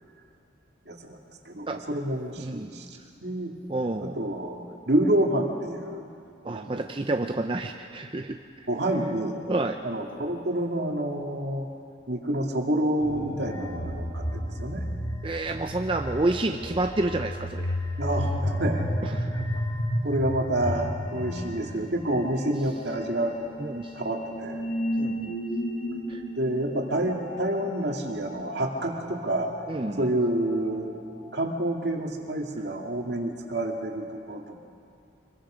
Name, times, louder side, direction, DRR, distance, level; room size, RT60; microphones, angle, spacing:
voice 1, 0.9-1.2 1.5-2.9 3.2-3.5 4.0-4.6 4.9-6.0 6.5-6.8 8.7-9.4 9.8-11.7 12.1-14.9 18.0-18.9 19.3-19.6 20.0-23.4 23.9-24.6 26.4-29.5 30.0-31.0 31.3-34.6, right 1 dB, 65° right, 1 dB, 2.3 m, -28 dB
voice 2, 2.4-2.7 3.7-4.2 6.4-8.4 9.5-9.8 15.2-17.8 19.0-19.4 23.6-23.9 25.0-25.4 26.1-26.2 29.7-30.1, right 2 dB, 30° right, 5 dB, 0.6 m, -29 dB
sound 1, 13.0-31.2, equal, 85° left, 6.4 m, -33 dB
25.5 x 22.0 x 5.1 m, 2.4 s
head